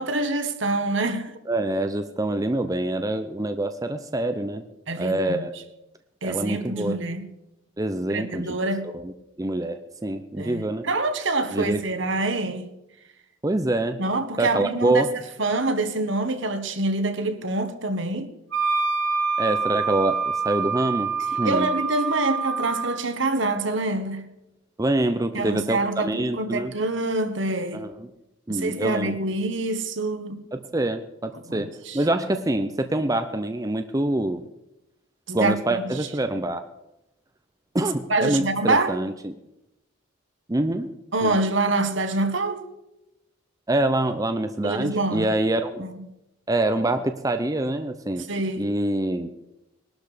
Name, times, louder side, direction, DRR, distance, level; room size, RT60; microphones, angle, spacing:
voice 1, 0.0-1.3 4.9-5.4 6.2-7.3 8.1-8.9 10.4-12.7 14.0-15.0 15.4-18.3 21.4-24.3 25.3-27.8 28.5-30.4 31.5-32.0 35.3-35.9 38.1-39.0 41.1-42.7 44.6-45.3 45.8-45.9 48.3-48.7, right 2 dB, 65° right, 1.5 m, -26 dB
voice 2, 1.5-4.6 5.0-5.5 6.2-7.0 7.8-8.5 8.9-9.1 9.4-10.8 11.5-11.8 13.4-14.0 14.4-15.1 19.4-21.7 24.8-26.7 27.7-28.1 28.5-29.2 30.5-34.4 35.3-36.6 37.7-39.4 40.5-40.9 41.2-41.3 43.7-45.9 46.5-48.3 48.6-49.3, right 1 dB, 15° right, 0.6 m, -25 dB
Wind instrument woodwind instrument, 18.5-23.0, right 5 dB, 90° right, 2.7 m, -26 dB
20.5 x 12.5 x 5.1 m
head